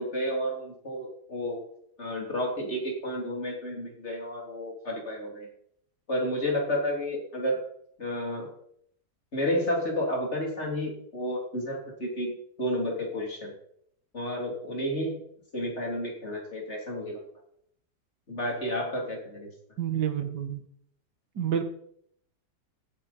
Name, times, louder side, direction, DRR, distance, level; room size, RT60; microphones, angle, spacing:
voice 1, 0.0-1.6 2.0-5.5 6.1-7.6 8.0-8.5 9.3-13.5 14.1-15.2 15.5-17.2 18.3-19.5, equal, 40° left, -1 dB, 3.6 m, -31 dB
voice 2, 19.8-20.6 21.4-21.6, right 9 dB, 80° right, 7 dB, 2.1 m, -28 dB
15.0 x 9.4 x 4.3 m, 0.69 s
omnidirectional pair, 1.8 m